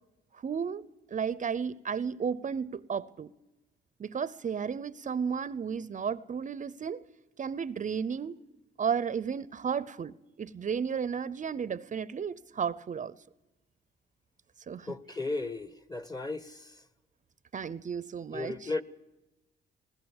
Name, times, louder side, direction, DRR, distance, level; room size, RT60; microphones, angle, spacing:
voice 1, 0.3-0.8 1.1-3.3 4.0-7.0 7.4-8.4 8.8-13.2 14.7-15.0 17.5-18.7, right 7 dB, 40° right, 0.7 m, -33 dB
voice 2, 14.9-16.8 18.3-18.8, left 3 dB, 20° left, 1.3 m, -35 dB
20.5 x 19.5 x 7.2 m
cardioid pair, 90°, 20 cm